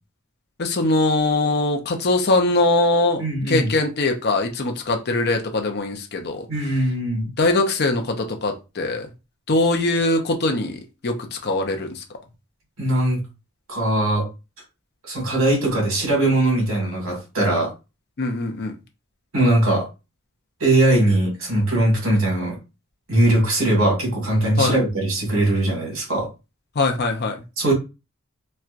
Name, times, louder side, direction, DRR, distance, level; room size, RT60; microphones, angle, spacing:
voice 1, 0.6-6.4 7.4-9.1 9.5-12.0 18.2-18.7 24.6-24.8 26.8-27.4, left 2 dB, 50° left, 0.7 m, -22 dB
voice 2, 3.2-3.7 6.5-7.3 12.8-13.2 13.7-14.3 15.0-17.7 19.3-19.9 20.6-22.6 23.1-26.3 27.6-27.7, right 1 dB, 75° right, 2.0 m, -20 dB
4.3 x 2.2 x 2.5 m
head